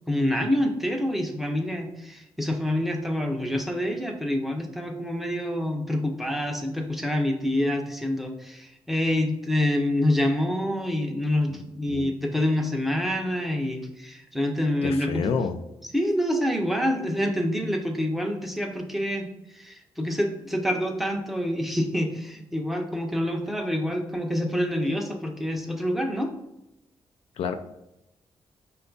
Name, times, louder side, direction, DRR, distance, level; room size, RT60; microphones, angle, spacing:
voice 1, 0.1-15.3 15.9-26.3, left 1 dB, ahead, 2 dB, 0.5 m, -27 dB
voice 2, 11.5-12.1 14.8-15.6 27.4-27.5, left 6 dB, 80° left, 9 dB, 0.4 m, -29 dB
5.2 x 2.3 x 3.8 m, 0.89 s
wide cardioid pair, 135°, 10 cm